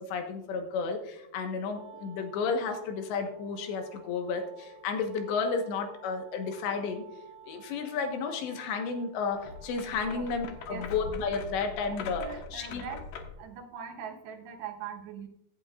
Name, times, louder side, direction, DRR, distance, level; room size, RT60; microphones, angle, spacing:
voice 1, 0.0-7.0 7.5-12.2 12.5-12.8, left 5 dB, 85° left, 5 dB, 3.6 m, -32 dB
Wind instrument woodwind instrument, 1.6-10.8, right 5 dB, 35° right, 2.4 m, -53 dB
sound 1, 9.4-13.5, left 3 dB, 70° left, 2.8 m, -42 dB
voice 2, 11.9-13.1 13.4-15.3, right 7 dB, 80° right, 3 dB, 3.4 m, -41 dB
15.5 x 11.0 x 2.4 m, 0.82 s
omnidirectional pair, 4.9 m